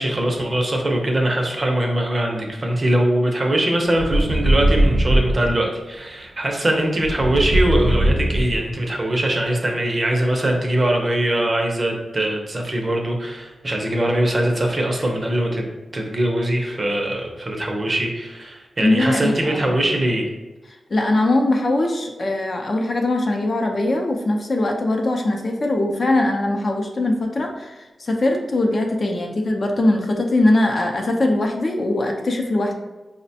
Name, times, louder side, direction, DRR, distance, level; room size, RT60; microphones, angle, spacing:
voice 1, 0.0-15.7 15.9-20.2, right 1 dB, 35° right, 1 dB, 0.6 m, -22 dB
sound 1, 3.9-5.5 7.0-8.9, right 1 dB, 80° right, 0.4 m, -19 dB
voice 2, 18.8-19.8 20.9-32.8, left 2 dB, 45° left, 2 dB, 0.5 m, -21 dB
4.9 x 2.1 x 2.7 m, 1.1 s
wide cardioid pair, 105°, 0 cm